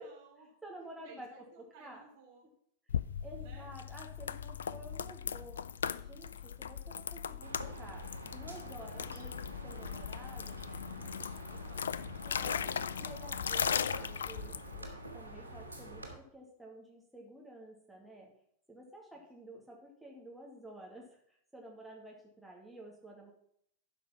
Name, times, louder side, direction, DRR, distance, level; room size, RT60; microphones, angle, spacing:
voice 1, 0.0-0.5 1.0-2.5 3.4-3.7 10.7-12.1 12.4-13.1 19.1-19.2, right 4 dB, 50° right, 0 dB, 3.0 m, -58 dB
voice 2, 0.6-1.3 1.8-2.0 3.2-5.6 5.9-7.5 7.8-10.6 12.2-12.7 13.0-14.9 15.1-18.3 18.7-21.2 21.5-23.3, right 1 dB, 5° right, -3 dB, 2.2 m, -51 dB
sound 1, 2.9-14.9, left 7 dB, 70° left, 0.3 m, -38 dB
sound 2, 7.4-16.1, right 1 dB, 90° left, 1.6 m, -47 dB
12.0 x 5.0 x 5.7 m, 0.68 s
figure-of-eight pair, 90°, 0 cm